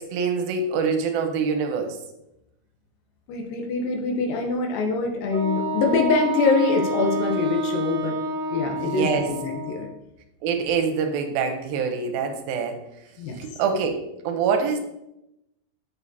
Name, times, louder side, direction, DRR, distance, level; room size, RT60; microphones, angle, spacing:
voice 1, 0.0-2.0 8.8-9.3 10.4-12.8 13.4-14.8, right 5 dB, 85° right, 5 dB, 2.6 m, -25 dB
voice 2, 3.3-8.2 8.5-9.9 13.2-13.4, left 4 dB, 75° left, 1 dB, 2.6 m, -24 dB
Wind instrument woodwind instrument, 5.3-9.9, right 1 dB, 50° right, 2.2 m, -28 dB
7.2 x 6.9 x 2.8 m, 0.86 s
omnidirectional pair, 4.2 m